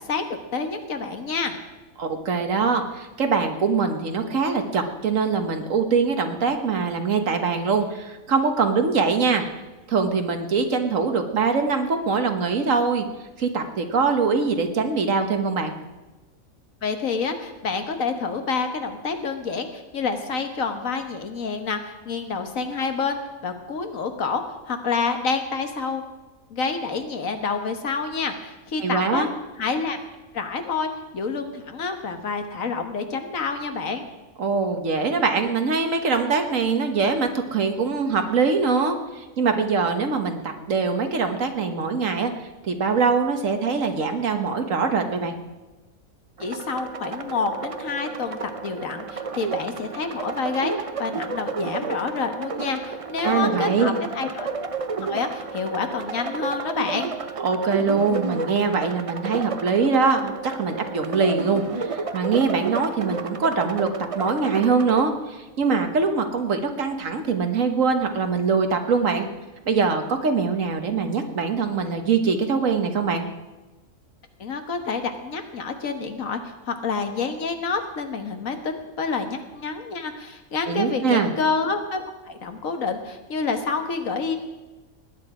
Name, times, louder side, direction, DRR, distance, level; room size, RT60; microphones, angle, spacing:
voice 1, 0.5-1.6 16.8-23.2 23.4-26.0 26.5-29.3 29.6-30.0 30.3-34.0 46.4-50.7 51.0-54.5 55.1-57.1 74.4-76.4 76.7-84.4, left 4 dB, 70° left, 6 dB, 1.7 m, -28 dB
voice 2, 2.0-9.4 9.9-13.0 13.4-15.7 28.8-29.3 34.4-42.3 42.6-45.3 53.2-53.9 57.4-63.9 64.1-69.3 69.6-73.2 80.7-81.3, right 5 dB, 65° right, 6 dB, 1.7 m, -23 dB
sound 1, 46.4-65.0, right 4 dB, 40° right, 0.5 m, -31 dB
19.0 x 9.9 x 4.9 m, 1.2 s
omnidirectional pair, 1.5 m